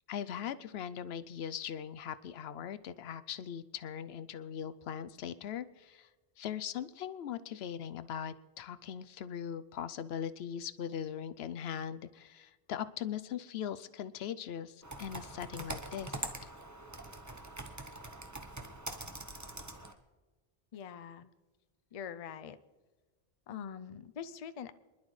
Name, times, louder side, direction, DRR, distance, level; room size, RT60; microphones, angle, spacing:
voice 1, 0.1-6.1 6.4-16.2, left 9 dB, 80° left, 13 dB, 0.8 m, -40 dB
Computer keyboard, 14.8-19.9, right 2 dB, 20° right, 0.9 m, -43 dB
voice 2, 20.7-21.3 21.9-22.6 23.5-24.7, left 8 dB, 45° left, 12 dB, 0.5 m, -44 dB
24.0 x 11.5 x 3.2 m, 1.2 s
omnidirectional pair, 1.0 m